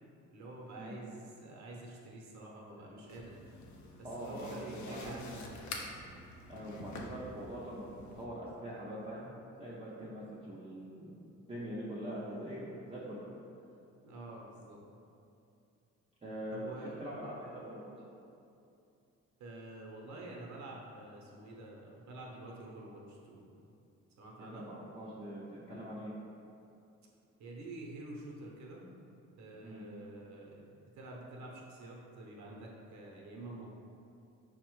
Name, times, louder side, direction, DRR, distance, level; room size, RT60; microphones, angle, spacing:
voice 1, 0.3-3.4 4.0-5.8 14.0-14.8 16.5-16.9 19.4-23.4 24.2-24.7 27.4-28.9 29.4-30.7 31.0-33.7, right 2 dB, 65° right, -2 dB, 0.7 m, -48 dB
sound 1, 3.1-8.2, left 2 dB, 70° left, 0.6 m, -48 dB
voice 2, 4.0-5.4 6.5-11.1 11.5-13.2 16.2-17.8 24.4-26.1 29.6-30.0, equal, 20° right, -9 dB, 0.6 m, -43 dB
5.2 x 2.1 x 3.0 m, 2.6 s
cardioid pair, 90°, 30 cm